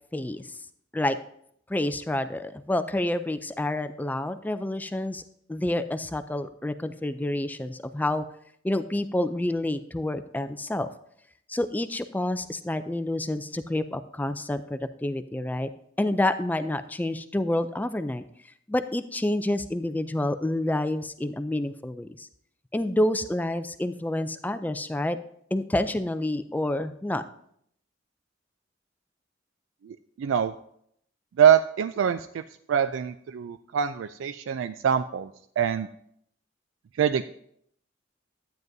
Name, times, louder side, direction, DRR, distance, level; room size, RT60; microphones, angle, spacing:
voice 1, 0.1-0.6 0.9-1.2 1.7-5.2 5.5-8.2 8.6-10.9 11.5-15.7 16.0-18.2 18.7-22.3 22.7-25.2 25.5-27.2, left 1 dB, 10° left, 11 dB, 0.3 m, -28 dB
voice 2, 30.2-30.5 31.4-32.4 32.7-35.3 35.6-35.9 37.0-37.2, right 8 dB, 80° right, 11 dB, 0.3 m, -24 dB
12.0 x 9.2 x 2.6 m, 0.70 s
head